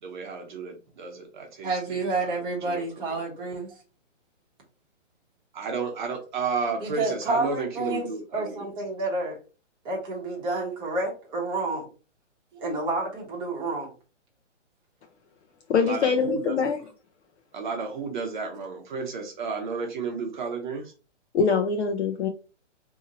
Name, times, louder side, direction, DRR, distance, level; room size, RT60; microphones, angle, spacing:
voice 1, 0.0-1.7 2.6-2.8 5.5-8.7 15.8-16.6 17.5-20.9, right 4 dB, 40° right, 2 dB, 0.8 m, -32 dB
voice 2, 1.6-3.7 6.8-9.4 9.8-11.9 12.5-13.9, right 2 dB, 15° right, -2 dB, 1.0 m, -29 dB
voice 3, 15.7-16.8 21.3-22.3, left 5 dB, 60° left, 4 dB, 0.6 m, -23 dB
2.8 x 2.7 x 3.8 m, 0.34 s
hypercardioid pair, 155°, 37 cm